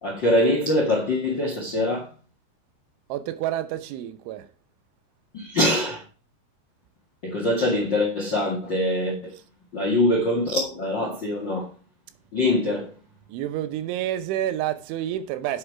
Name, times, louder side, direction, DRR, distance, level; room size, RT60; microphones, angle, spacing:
voice 1, 0.0-2.1 5.3-6.0 7.2-9.3 9.7-11.7 12.3-12.9, left 1 dB, 55° left, 1.3 m, -23 dB
voice 2, 3.1-4.5 13.3-15.6, right 12 dB, 80° right, 3.3 m, -29 dB
8.5 x 8.1 x 4.8 m
omnidirectional pair, 5.5 m